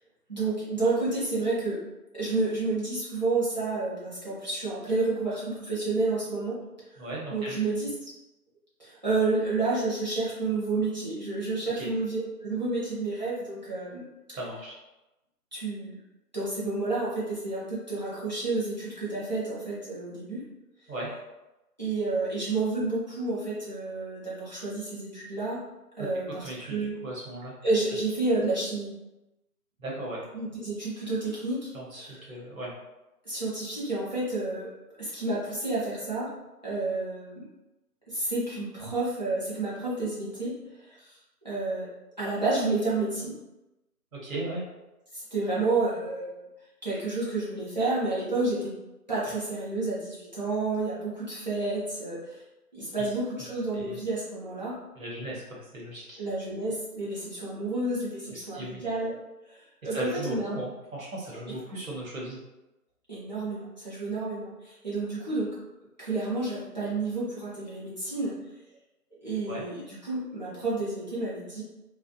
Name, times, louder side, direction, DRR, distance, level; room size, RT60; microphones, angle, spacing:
voice 1, 0.3-1.8 2.1-6.6 6.9-7.0 7.3-7.9 8.8-14.0 15.5-15.9 16.3-20.4 21.8-25.6 26.0-26.9 27.6-28.9 30.3-31.7 32.0-32.2 33.2-34.7 35.0-36.3 36.6-37.5 38.1-40.5 40.8-41.2 41.4-41.9 42.2-43.4 45.1-46.4 46.8-48.7 49.1-52.4 52.7-54.8 56.2-59.2 59.5-60.5 63.1-65.5 66.0-68.4 69.2-71.6, right 3 dB, 30° right, -9 dB, 0.7 m, -30 dB
voice 2, 7.0-7.6 11.7-11.9 14.4-14.7 20.9-21.1 26.4-27.6 29.8-30.2 31.7-32.7 44.1-44.6 53.0-53.1 53.7-54.0 54.9-56.2 58.3-58.8 59.9-62.4 69.5-69.6, right 1 dB, 55° right, -4 dB, 1.1 m, -37 dB
2.6 x 2.4 x 2.6 m, 1.0 s
figure-of-eight pair, 160°, 48 cm